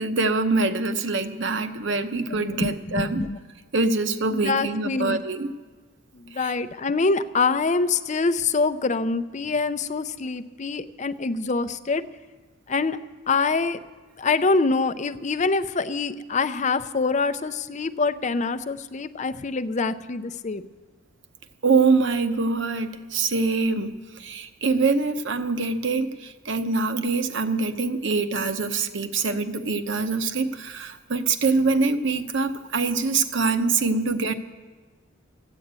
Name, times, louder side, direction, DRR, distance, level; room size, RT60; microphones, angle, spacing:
voice 1, 0.0-3.2 3.7-5.5 6.4-6.6 21.6-34.3, right 4 dB, 60° right, 9 dB, 0.9 m, -24 dB
voice 2, 2.3-3.4 4.3-5.2 6.4-12.0 12.7-13.0 13.3-13.8 14.2-20.6, left 4 dB, 35° left, 12 dB, 0.5 m, -25 dB
14.5 x 9.8 x 8.2 m, 1.4 s
head